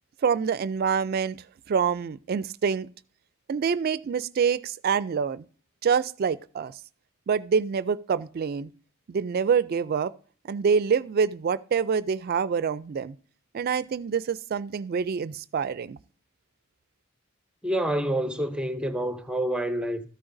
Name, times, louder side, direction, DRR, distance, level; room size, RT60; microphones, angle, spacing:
voice 1, 0.2-1.4 1.7-2.9 3.5-5.4 5.8-6.8 7.3-8.7 9.1-10.1 10.5-13.2 13.5-16.0, right 6 dB, 50° right, 0.3 m, -26 dB
voice 2, 17.6-20.1, right 1 dB, 5° right, 0.6 m, -27 dB
13.5 x 8.7 x 2.6 m
head